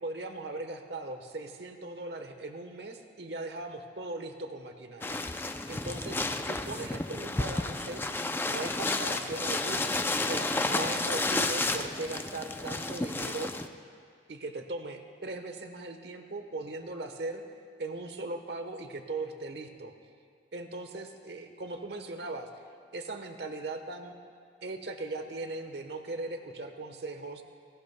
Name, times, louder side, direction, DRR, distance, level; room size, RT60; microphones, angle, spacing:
voice 1, 0.0-5.2 5.7-6.2 6.4-8.0 8.5-13.5 14.3-17.4 17.8-19.9 20.5-22.5 22.9-24.2 24.6-27.4, right 2 dB, 65° right, 6 dB, 1.1 m, -39 dB
sound 1, 5.0-13.7, left 2 dB, 10° left, 0.4 m, -31 dB
27.0 x 17.5 x 2.2 m, 2.1 s
head